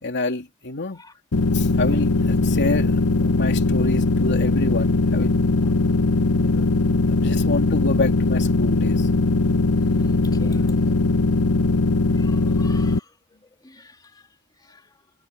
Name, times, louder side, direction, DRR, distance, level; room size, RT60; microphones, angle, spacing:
voice 1, 0.0-1.0 1.5-5.3 6.4-6.7 7.1-9.1, left 2 dB, 55° left, 2.9 m, -28 dB
sound 1, 1.3-13.0, left 3 dB, 85° left, 0.9 m, -20 dB
voice 2, 9.8-10.9 12.2-13.0 13.6-13.9, left 2 dB, 20° left, 3.0 m, -43 dB
head